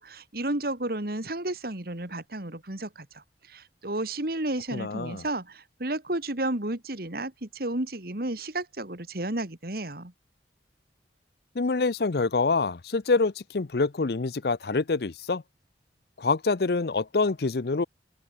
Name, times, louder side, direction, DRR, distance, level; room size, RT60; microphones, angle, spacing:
voice 1, 0.0-10.1, right 1 dB, 55° right, 2.6 m, -32 dB
voice 2, 4.7-5.2 11.6-15.4 16.2-17.8, left 3 dB, 60° left, 0.6 m, -26 dB
open air
head